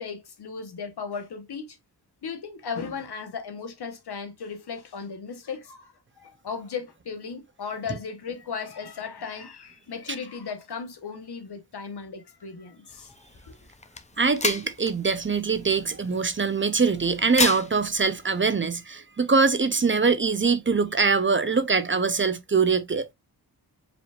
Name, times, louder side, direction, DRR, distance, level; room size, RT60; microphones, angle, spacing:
voice 1, 0.0-1.8 2.2-13.1 13.5-13.6, left 5 dB, 85° left, 1.0 m, -36 dB
sound 1, 12.9-18.4, left 3 dB, 20° left, 0.5 m, -33 dB
voice 2, 14.2-23.1, right 4 dB, 30° right, 0.5 m, -23 dB
4.9 x 3.4 x 2.3 m
wide cardioid pair, 120°, 38 cm